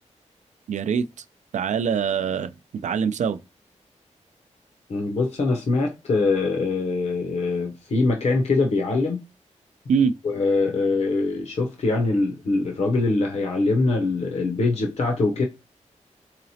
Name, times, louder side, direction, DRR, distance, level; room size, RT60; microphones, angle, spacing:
voice 1, 0.7-1.1 1.5-3.4 9.9-10.1, right 6 dB, 75° right, 0.4 m, -23 dB
voice 2, 4.9-9.2 10.2-15.5, left 3 dB, 60° left, 0.7 m, -23 dB
4.0 x 2.9 x 2.8 m
wide cardioid pair, 120°, 13 cm